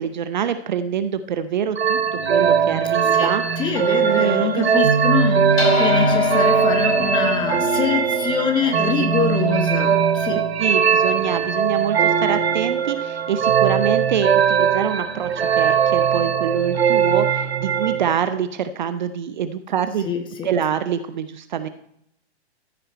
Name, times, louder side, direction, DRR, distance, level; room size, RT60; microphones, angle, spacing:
voice 1, 0.0-3.7 4.1-4.8 8.7-9.1 10.6-20.1 20.4-21.7, right 8 dB, 45° right, 11 dB, 0.6 m, -25 dB
sound 1, 1.8-18.2, right 7 dB, 65° right, 1.2 m, -20 dB
voice 2, 3.6-10.4 20.0-20.5, left 7 dB, 15° left, 6 dB, 1.2 m, -25 dB
sound 2, 5.6-10.2, left 3 dB, 60° left, 2.9 m, -25 dB
13.5 x 6.6 x 4.4 m, 0.72 s
figure-of-eight pair, 115°, 34 cm